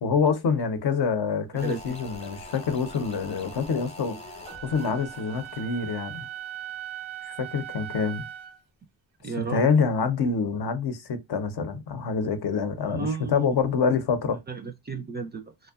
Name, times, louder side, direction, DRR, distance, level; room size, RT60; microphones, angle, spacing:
voice 1, 0.0-4.2 4.6-6.3 7.2-8.3 9.4-14.4, left 5 dB, 60° left, 0.7 m, -26 dB
sound 1, 1.6-6.7 7.0-7.1, left 1 dB, 15° left, 0.6 m, -44 dB
voice 2, 1.6-1.9 9.2-9.6 12.8-13.5 14.5-15.7, right 4 dB, 25° right, 0.3 m, -33 dB
Wind instrument woodwind instrument, 4.5-8.6, right 11 dB, 85° right, 0.5 m, -39 dB
2.6 x 2.1 x 2.3 m
cardioid pair, 55°, 44 cm